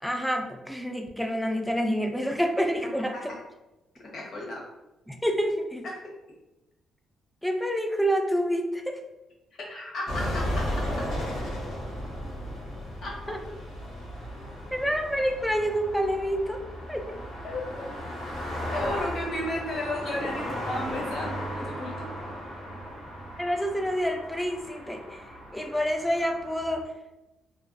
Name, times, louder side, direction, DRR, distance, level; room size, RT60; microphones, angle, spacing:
voice 1, 0.0-3.3 5.1-5.9 7.4-9.0 13.3-13.4 14.7-16.6 16.9-17.1 23.4-25.2 25.5-26.9, equal, 5° left, 4 dB, 0.3 m, -28 dB
voice 2, 4.0-4.6 5.8-6.0 9.5-10.9 13.0-13.1 17.4-17.7 18.7-22.1, left 1 dB, 55° left, -2 dB, 0.9 m, -34 dB
sound 1, 10.1-26.8, equal, 85° left, 0.9 m, -35 dB
2.4 x 2.2 x 2.5 m, 0.98 s
cardioid pair, 90°, 0 cm